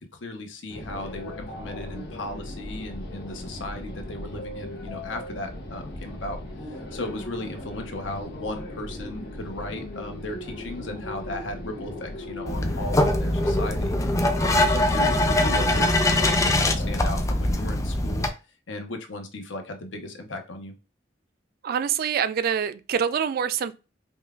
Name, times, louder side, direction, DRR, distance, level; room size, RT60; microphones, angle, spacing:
voice 1, 0.1-14.0 14.5-18.3 18.7-20.7, left 2 dB, 85° left, 0.8 m, -36 dB
sound 1, 0.7-17.0, left 1 dB, 60° left, 1.0 m, -38 dB
sound 2, 12.5-18.3, left 1 dB, 15° left, 0.4 m, -22 dB
voice 2, 21.6-23.7, right 8 dB, 55° right, 0.3 m, -25 dB
5.4 x 2.2 x 2.3 m
head